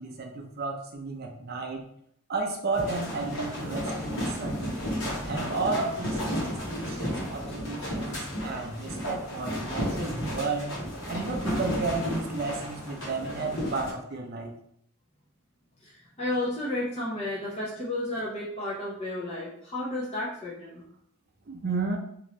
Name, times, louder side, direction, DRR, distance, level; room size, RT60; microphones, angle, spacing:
voice 1, 0.0-1.8 2.3-4.7 5.2-10.7 11.1-14.5 21.5-22.0, right 3 dB, 45° right, 2 dB, 0.5 m, -32 dB
sound 1, 2.7-13.9, equal, 60° left, 1.1 m, -33 dB
voice 2, 15.8-20.8, left 1 dB, 30° left, -8 dB, 0.6 m, -32 dB
2.9 x 2.6 x 3.1 m, 0.71 s
head